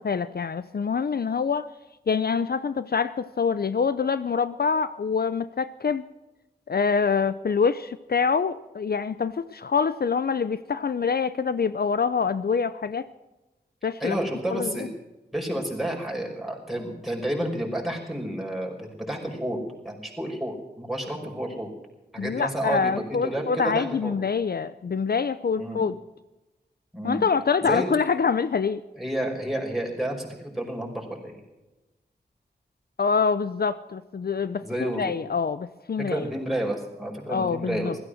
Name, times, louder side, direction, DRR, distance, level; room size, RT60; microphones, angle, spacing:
voice 1, 0.0-1.7 2.1-6.0 6.7-13.1 13.8-14.2 14.5-14.9 22.2-26.0 27.0-28.8 33.0-36.2 37.3-37.9, left 5 dB, 60° left, 14 dB, 0.6 m, -25 dB
voice 2, 13.8-14.9 15.3-21.7 22.1-24.1 25.6-25.8 26.9-27.2 27.6-27.9 28.9-31.4 34.6-35.1 36.0-37.9, right 1 dB, ahead, -1 dB, 5.5 m, -30 dB
16.0 x 14.0 x 6.5 m, 1.0 s
wide cardioid pair, 50°, 18 cm